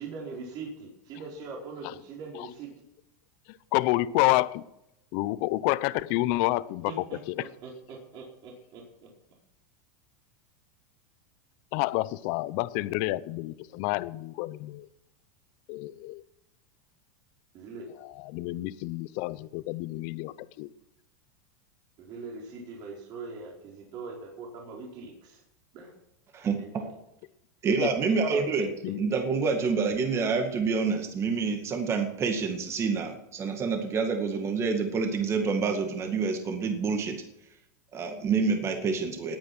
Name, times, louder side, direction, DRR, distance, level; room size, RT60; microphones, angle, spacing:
voice 1, 0.0-2.7 6.9-8.8 17.5-17.9 22.0-25.4 25.7-25.9 26.6-26.9 28.3-28.7 29.1-29.2, right 4 dB, 45° right, -2 dB, 4.4 m, -41 dB
voice 2, 3.7-4.6 5.1-6.9 7.3-7.4 11.7-14.9 15.7-16.2 18.2-20.7 27.7-27.9 28.8-29.0, left 18 dB, 55° left, 17 dB, 0.8 m, -29 dB
voice 3, 26.3-26.9 27.6-28.7 29.0-37.2 37.9-39.4, right 5 dB, 30° right, 4 dB, 2.1 m, -27 dB
19.0 x 9.3 x 6.2 m, 0.85 s
supercardioid pair, 130°, 10 cm